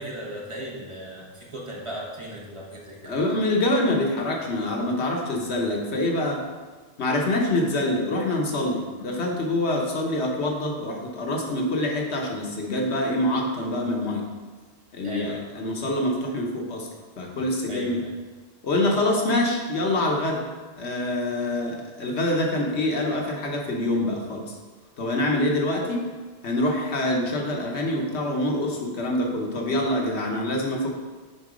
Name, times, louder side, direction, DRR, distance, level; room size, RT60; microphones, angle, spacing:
voice 1, 0.0-3.1 15.0-15.4 17.7-17.9, right 1 dB, 30° right, -4 dB, 1.1 m, -37 dB
voice 2, 3.0-6.4 7.0-14.2 14.9-16.9 17.2-18.0 18.6-20.4 20.8-24.5 25.0-26.0 26.4-30.9, left 1 dB, 75° left, 0 dB, 1.3 m, -25 dB
7.1 x 3.8 x 5.0 m, 1.3 s
omnidirectional pair, 1.2 m